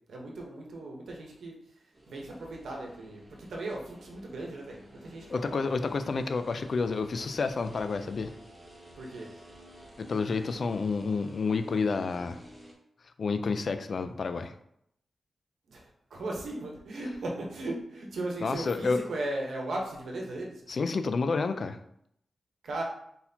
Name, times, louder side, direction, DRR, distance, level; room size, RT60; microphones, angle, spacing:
voice 1, 0.1-1.5 2.1-3.2 3.5-5.7 9.0-9.3 15.7-20.5 22.6-22.8, right 2 dB, 90° right, -1 dB, 1.0 m, -37 dB
sound 1, 1.9-12.7, equal, 25° right, 1.2 m, -51 dB
voice 2, 5.3-8.3 10.0-12.4 13.2-14.5 18.4-19.0 20.7-21.8, left 4 dB, 50° left, 9 dB, 0.3 m, -29 dB
4.1 x 4.1 x 2.8 m, 0.72 s
wide cardioid pair, 160°, 0 cm